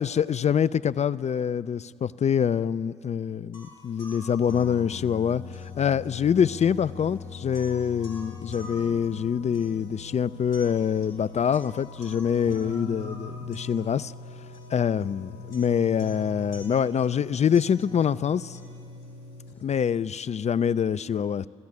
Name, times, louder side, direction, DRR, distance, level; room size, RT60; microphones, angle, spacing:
voice 1, 0.0-5.4 5.8-14.1 14.7-18.6 19.6-21.5, left 8 dB, 50° left, 18 dB, 0.6 m, -25 dB
sound 1, 3.5-19.5, left 3 dB, 90° left, 4.0 m, -41 dB
29.5 x 15.0 x 9.7 m, 2.2 s
hypercardioid pair, 40°, 15 cm